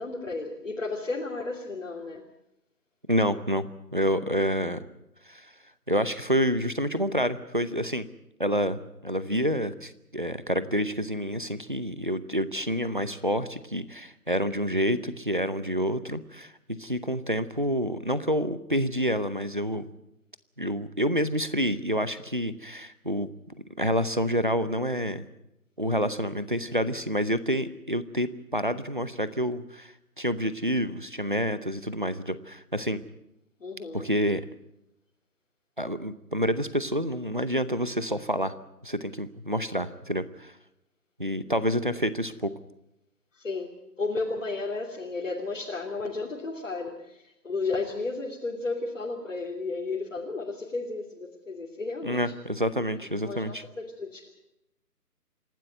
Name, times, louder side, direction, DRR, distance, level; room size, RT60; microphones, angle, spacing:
voice 1, 0.0-2.2 33.6-34.1 43.3-52.2 53.2-54.3, left 3 dB, 50° left, -2 dB, 3.0 m, -33 dB
voice 2, 3.1-3.7 3.9-4.8 5.3-5.5 5.9-8.1 8.4-16.5 16.8-19.9 20.6-23.3 23.8-25.3 25.8-33.0 33.9-34.4 35.8-38.5 38.8-40.5 41.2-42.5 52.0-53.6, equal, 35° right, 14 dB, 0.7 m, -28 dB
27.5 x 12.5 x 9.4 m, 0.85 s
figure-of-eight pair, 175°, 48 cm